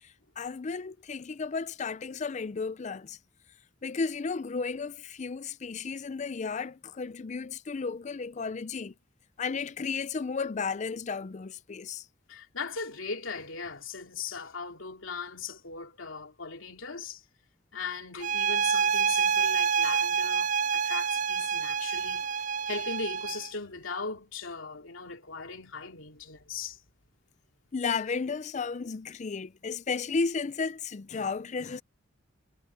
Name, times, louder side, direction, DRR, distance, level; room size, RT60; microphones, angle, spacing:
voice 1, 0.0-3.2 3.8-8.9 9.4-12.1 27.7-31.8, left 4 dB, 35° left, 0.4 m, -33 dB
voice 2, 12.3-17.2 17.7-26.8, left 4 dB, 90° left, 2.8 m, -39 dB
sound 1, 18.2-23.5, right 6 dB, 40° right, 0.4 m, -27 dB
head